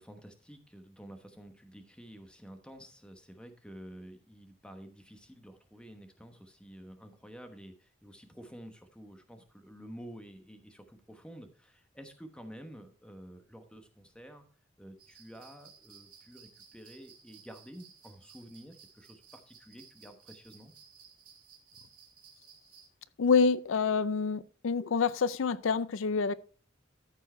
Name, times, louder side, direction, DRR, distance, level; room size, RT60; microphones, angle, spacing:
voice 1, 0.0-14.4 14.8-20.7, equal, 5° left, 1.0 m, -50 dB
sound 1, 15.0-22.9, right 7 dB, 45° right, 2.1 m, -57 dB
voice 2, 23.2-26.3, left 5 dB, 85° left, 0.5 m, -27 dB
13.5 x 4.6 x 4.3 m
head